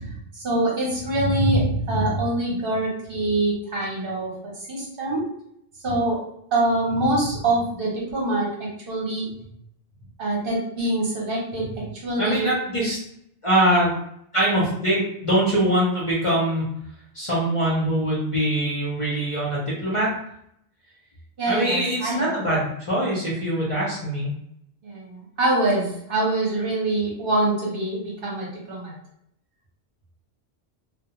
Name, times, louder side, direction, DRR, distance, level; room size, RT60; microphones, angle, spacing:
voice 1, 0.0-5.3 5.8-6.2 6.5-9.3 10.2-12.5 21.4-22.4 24.8-29.0, right 2 dB, 55° right, -4 dB, 1.0 m, -24 dB
voice 2, 12.2-13.0 13.4-13.9 14.3-16.6 17.1-20.1 21.5-24.3, right 1 dB, 35° left, -6 dB, 0.7 m, -23 dB
2.2 x 2.2 x 2.9 m, 0.73 s
omnidirectional pair, 1.1 m